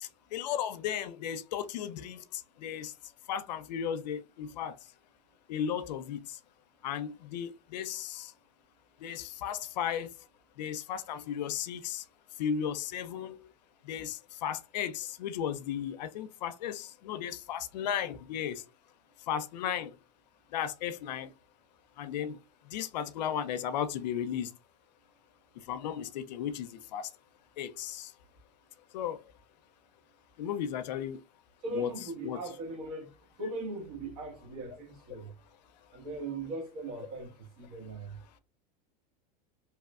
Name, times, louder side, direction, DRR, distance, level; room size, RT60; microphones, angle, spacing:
voice 1, 0.0-2.9 3.3-4.8 5.5-6.4 6.8-8.3 9.0-10.3 10.6-12.1 12.4-13.5 13.8-18.6 19.3-20.0 20.5-21.3 22.0-22.4 22.6-24.6 25.6-27.1 27.6-28.1 28.9-29.2 30.4-31.2 31.7-32.4, left 9 dB, 90° left, 0.4 m, -35 dB
voice 2, 31.6-33.1 33.4-35.3 35.9-38.2, right 2 dB, 65° right, 1.2 m, -39 dB
2.9 x 2.1 x 2.3 m
supercardioid pair, 135°, 21 cm